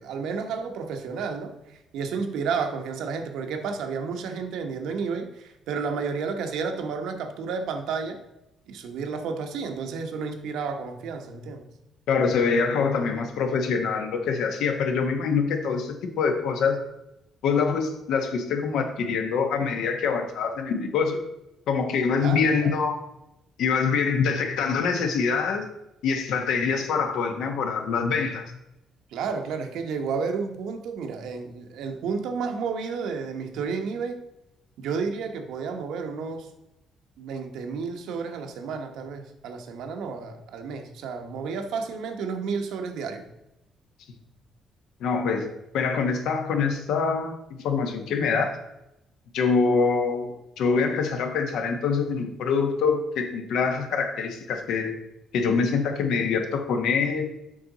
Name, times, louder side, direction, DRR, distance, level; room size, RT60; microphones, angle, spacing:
voice 1, 0.0-8.2 8.7-11.7 22.2-22.7 29.1-34.2 34.8-36.5 37.2-43.2, right 5 dB, 85° right, 5 dB, 1.0 m, -31 dB
voice 2, 12.1-16.8 17.4-21.2 21.7-23.1 23.6-25.7 26.0-28.4 45.0-48.6 49.3-54.9 55.3-57.3, left 5 dB, 80° left, 5 dB, 1.1 m, -25 dB
7.6 x 5.7 x 4.0 m, 0.89 s
cardioid pair, 150°, 0 cm